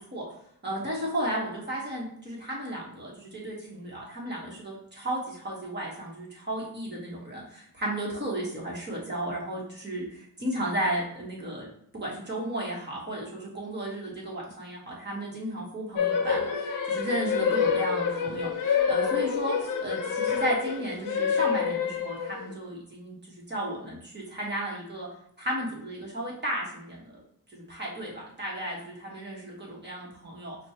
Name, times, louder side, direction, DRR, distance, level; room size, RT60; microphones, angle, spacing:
voice 1, 0.6-11.7 11.9-23.2 23.5-25.1 25.4-27.1 27.5-30.6, right 1 dB, 30° right, -4 dB, 1.3 m, -34 dB
sound 1, 16.0-22.5, left 6 dB, 60° left, 0.6 m, -27 dB
6.1 x 2.3 x 2.8 m, 0.69 s
wide cardioid pair, 145°, 36 cm